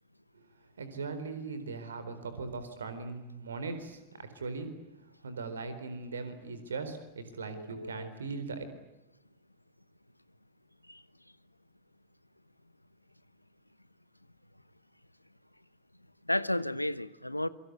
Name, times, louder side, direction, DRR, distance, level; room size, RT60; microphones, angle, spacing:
voice 1, 0.8-4.7 5.2-8.6, right 4 dB, 70° right, 4.2 m, -39 dB
voice 2, 7.5-8.1 10.9-11.0 16.3-17.5, left 1 dB, 85° left, 1.0 m, -33 dB
27.0 x 24.5 x 8.2 m
figure-of-eight pair, 90°, 0 cm